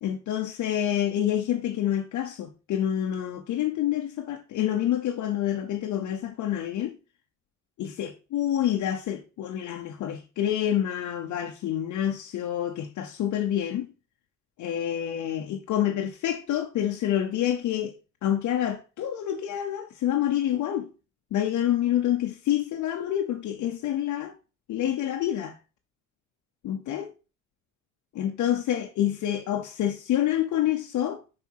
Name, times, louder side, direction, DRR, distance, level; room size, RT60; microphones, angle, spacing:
voice 1, 0.0-7.0 7.8-13.9 14.6-20.9 21.3-24.3 24.7-25.6 26.6-27.1 28.2-31.2, left 11 dB, 75° left, 0.8 m, -27 dB
5.5 x 5.2 x 4.6 m
cardioid pair, 90°, 30 cm